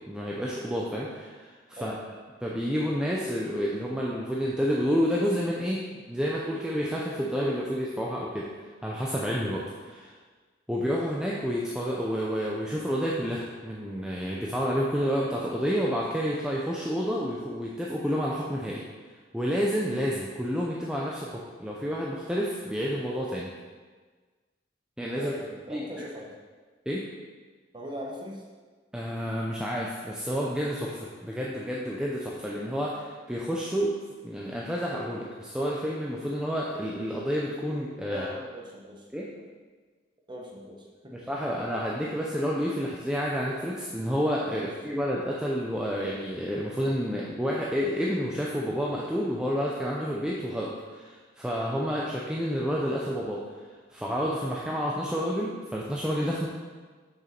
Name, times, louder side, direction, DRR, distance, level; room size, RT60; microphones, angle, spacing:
voice 1, 0.1-1.9 2.4-8.5 8.8-10.1 10.7-18.8 19.3-23.5 25.0-25.3 25.7-25.8 26.9-27.0 28.9-33.9 34.2-38.3 39.1-39.3 41.1-53.4 53.9-56.5, equal, 5° right, -4 dB, 0.5 m, -29 dB
voice 2, 25.2-26.4 27.7-28.4 38.1-39.1 39.3-39.4 40.3-41.1 44.5-44.7 51.7-51.9, equal, 25° right, -1 dB, 0.9 m, -40 dB
6.2 x 6.2 x 4.4 m, 1.4 s
head